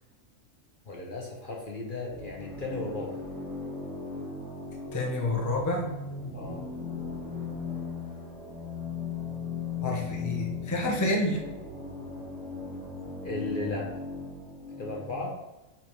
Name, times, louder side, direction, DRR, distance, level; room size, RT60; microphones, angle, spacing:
voice 1, 0.9-3.2 6.3-6.6 13.2-13.9 14.8-15.4, left 2 dB, 45° left, -1 dB, 1.0 m, -35 dB
sound 1, 2.1-15.2, left 4 dB, 65° left, 2.6 m, -37 dB
voice 2, 4.9-5.9 9.8-11.4, left 1 dB, 15° left, 0 dB, 0.7 m, -28 dB
7.2 x 3.4 x 4.5 m, 1.0 s
omnidirectional pair, 1.4 m